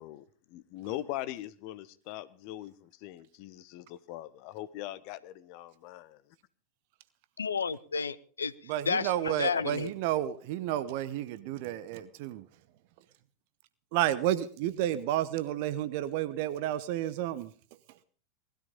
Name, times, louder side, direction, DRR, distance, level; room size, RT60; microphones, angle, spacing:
voice 1, 0.0-6.1, left 14 dB, 45° left, 1.2 m, -41 dB
voice 2, 7.4-8.5 8.9-9.9, left 5 dB, 70° left, 0.9 m, -31 dB
voice 3, 8.6-12.5 13.9-17.5, right 12 dB, 45° right, 1.0 m, -31 dB
19.5 x 13.0 x 5.3 m
figure-of-eight pair, 90°, 0 cm